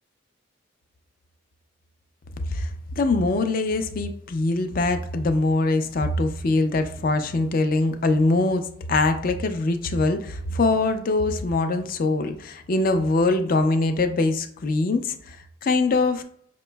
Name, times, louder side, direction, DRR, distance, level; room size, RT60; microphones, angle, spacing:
voice 1, 3.0-15.4 15.6-16.2, left 2 dB, 45° left, 8 dB, 0.4 m, -23 dB
5.2 x 2.9 x 2.2 m, 0.65 s
head